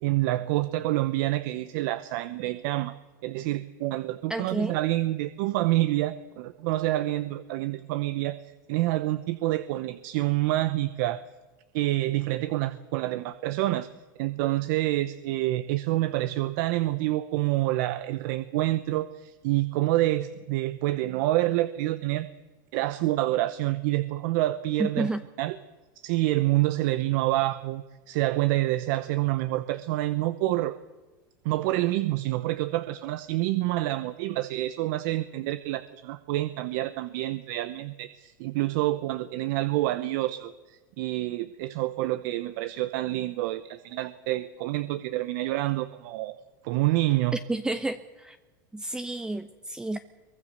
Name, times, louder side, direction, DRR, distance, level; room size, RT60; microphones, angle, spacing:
voice 1, 0.0-2.9 3.2-8.4 8.7-11.2 11.7-13.9 14.2-22.3 22.7-25.1 25.4-25.6 26.0-30.7 31.4-46.3 46.6-47.4, right 16 dB, 65° right, 13 dB, 1.0 m, -27 dB
voice 2, 4.3-4.8 24.8-25.2 47.3-48.4 48.7-50.0, right 2 dB, 5° right, 10 dB, 0.8 m, -30 dB
23.0 x 20.0 x 6.7 m, 1.2 s
supercardioid pair, 120°, 11 cm